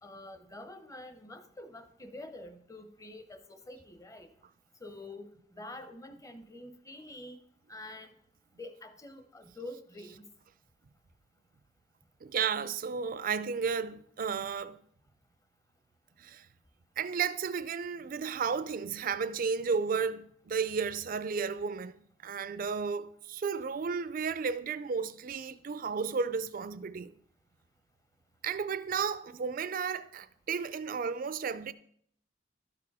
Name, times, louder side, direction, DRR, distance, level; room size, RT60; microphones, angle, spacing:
voice 1, 0.0-4.3 4.8-7.4 7.7-8.1 8.6-10.3, left 1 dB, 20° left, 0.8 m, -47 dB
voice 2, 12.2-14.8 16.2-16.5 17.0-27.1 28.4-31.7, right 6 dB, 50° right, 0.4 m, -33 dB
12.5 x 4.9 x 4.7 m
head